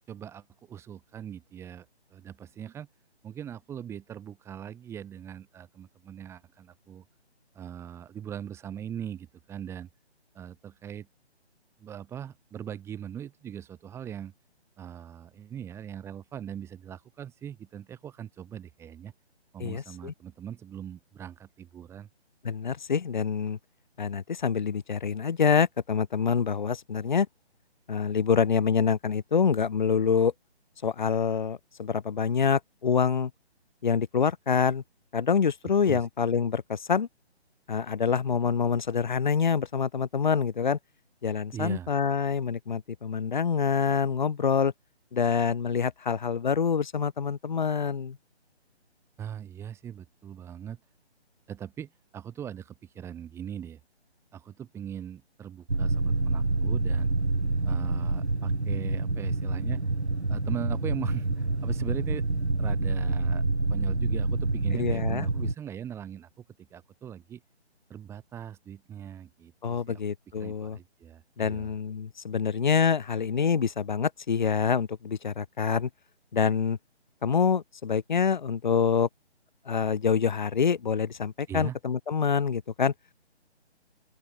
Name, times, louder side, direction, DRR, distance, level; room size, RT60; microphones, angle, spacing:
voice 1, 0.1-2.9 3.2-7.0 7.6-9.9 10.3-11.1 11.8-14.3 14.8-19.1 19.5-22.1 35.9-36.1 41.5-41.9 49.2-50.8 51.5-53.8 54.3-57.1 57.7-59.8 60.3-62.2 62.6-63.4 63.7-66.3 66.7-67.4 67.9-70.0 70.4-71.7 81.5-81.8, right 9 dB, 10° right, 5.0 m, -40 dB
voice 2, 19.6-20.1 22.4-23.6 24.0-27.3 27.9-30.3 30.8-33.3 33.8-34.8 35.1-37.1 37.7-40.8 41.2-44.7 45.1-48.2 64.7-65.3 69.6-70.8 71.4-75.9 76.3-76.8 77.2-79.1 79.7-82.9, left 6 dB, 45° left, 7.4 m, -26 dB
sound 1, 55.7-65.5, right 2 dB, 80° right, 2.7 m, -27 dB
open air
figure-of-eight pair, 145°, 33 cm